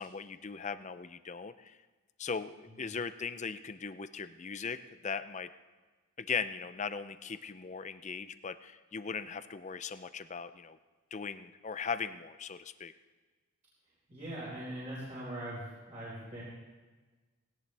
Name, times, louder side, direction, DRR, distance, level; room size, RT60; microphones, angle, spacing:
voice 1, 0.0-1.8 2.2-4.8 5.0-5.5 6.2-10.8 11.1-12.9, left 5 dB, 30° left, 12 dB, 0.5 m, -39 dB
voice 2, 14.1-16.4, right 1 dB, 30° right, -8 dB, 4.7 m, -41 dB
19.0 x 17.5 x 3.4 m, 1.3 s
head